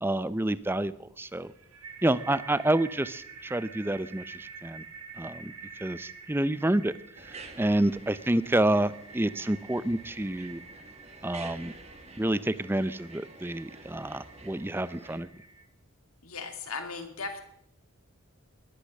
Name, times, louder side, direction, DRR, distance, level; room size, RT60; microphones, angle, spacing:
voice 1, 0.0-1.5 2.0-4.8 5.2-6.9 7.2-10.6 11.2-11.7 12.2-15.3, right 1 dB, 10° right, 16 dB, 0.5 m, -28 dB
sound 1, 1.3-15.6, right 5 dB, 85° right, 3.4 m, -48 dB
sound 2, 7.2-15.2, right 3 dB, 30° right, 1.7 m, -49 dB
voice 2, 16.2-17.4, left 4 dB, 75° left, 6 dB, 2.5 m, -37 dB
18.5 x 12.0 x 6.5 m, 0.76 s
head